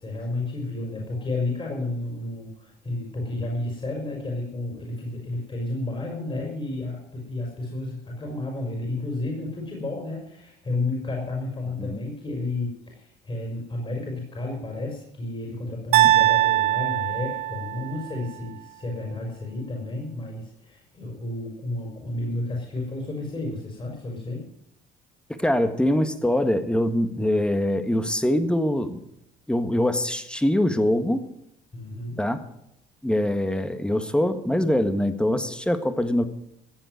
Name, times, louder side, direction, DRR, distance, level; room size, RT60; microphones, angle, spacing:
voice 1, 0.0-24.5 31.7-32.2, left 2 dB, 30° left, -1 dB, 5.1 m, -31 dB
sound 1, 15.9-18.1, right 15 dB, 85° right, 1.8 m, -21 dB
voice 2, 25.3-29.0 29.5-31.2 32.2-32.4 33.0-36.3, left 1 dB, 5° left, 9 dB, 1.7 m, -23 dB
15.0 x 7.8 x 9.2 m, 0.79 s
supercardioid pair, 85°, 17 cm